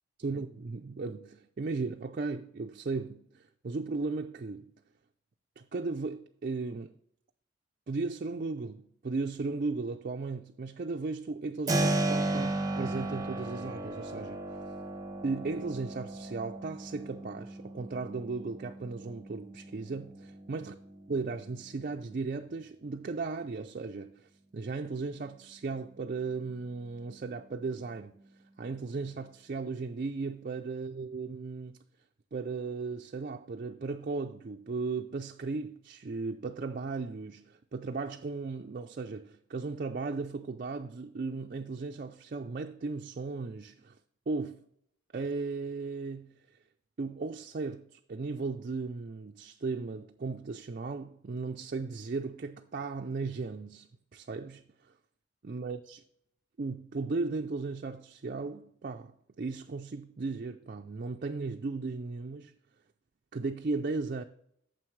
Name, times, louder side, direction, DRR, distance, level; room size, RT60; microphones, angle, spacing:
voice 1, 0.2-4.7 5.6-6.9 7.9-14.4 15.2-20.7 21.1-28.2 28.6-31.8 32.3-43.9 44.3-44.6 45.1-46.3 47.0-53.9 54.1-54.6 55.4-56.0 56.6-62.5 63.3-64.2, right 3 dB, 45° right, 0.4 m, -36 dB
Keyboard (musical), 11.7-22.3, right 2 dB, 20° right, 0.8 m, -35 dB
9.3 x 7.0 x 3.2 m
head